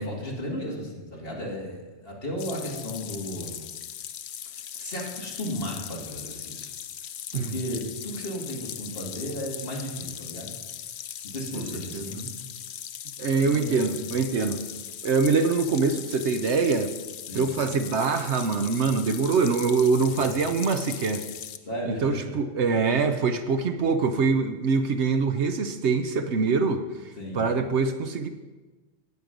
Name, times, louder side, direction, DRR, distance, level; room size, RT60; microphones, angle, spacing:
voice 1, 0.0-3.6 4.7-6.7 7.3-10.6 11.2-12.3 13.4-14.0 17.3-17.5 21.6-22.2 22.9-23.2 23.8-23.9 27.2-27.5, equal, 50° left, -2 dB, 2.6 m, -34 dB
sound 1, 2.4-21.6, left 9 dB, 65° left, 0.8 m, -39 dB
voice 2, 11.5-12.2 13.2-14.6 15.0-16.9 17.3-21.2 21.9-26.8 27.3-28.3, right 4 dB, 65° right, 8 dB, 1.0 m, -24 dB
18.0 x 6.4 x 5.2 m, 1.2 s
omnidirectional pair, 1.3 m